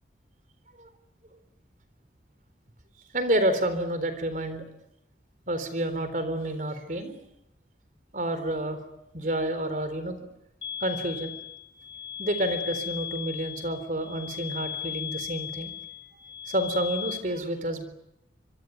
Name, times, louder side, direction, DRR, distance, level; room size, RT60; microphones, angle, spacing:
voice 1, 3.1-4.7 5.5-7.2 8.1-8.8 9.1-10.3 10.8-11.3 12.2-15.8 16.5-17.8, right 1 dB, 45° right, 10 dB, 3.8 m, -29 dB
sound 1, 10.6-17.2, left 10 dB, 25° left, 4.7 m, -37 dB
26.0 x 23.0 x 9.4 m, 0.85 s
head